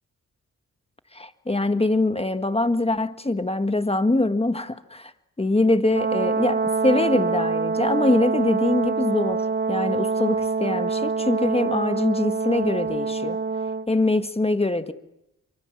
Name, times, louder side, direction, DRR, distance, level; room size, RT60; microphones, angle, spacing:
voice 1, 1.1-5.1 5.4-9.4 9.7-13.4 13.9-14.9, left 2 dB, 20° left, 9 dB, 1.7 m, -23 dB
Brass instrument, 5.9-13.9, right 4 dB, 30° right, 0.9 m, -25 dB
28.5 x 24.5 x 7.4 m, 0.84 s
cardioid pair, 75°, 32 cm